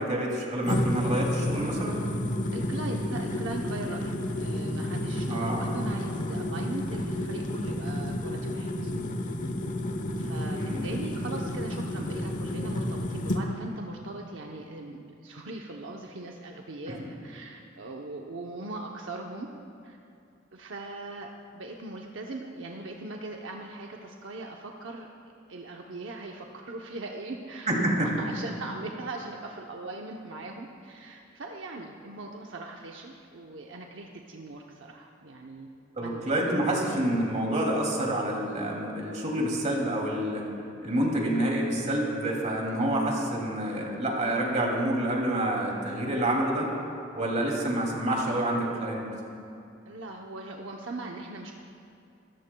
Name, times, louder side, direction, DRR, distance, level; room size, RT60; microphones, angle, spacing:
voice 1, 0.0-2.0 5.3-5.7 10.5-10.9 16.9-17.0 27.7-28.1 36.0-40.4 40.8-46.7 47.1-49.0, right 1 dB, 40° right, -1 dB, 2.6 m, -28 dB
sound 1, 0.6-13.4, left 1 dB, 40° left, 0.9 m, -31 dB
voice 2, 2.5-8.9 10.2-19.5 19.8-20.0 20.5-25.1 25.5-35.7 36.0-36.2 49.9-51.6, right 2 dB, 75° right, 1 dB, 0.8 m, -40 dB
25.5 x 14.0 x 2.3 m, 2.5 s
head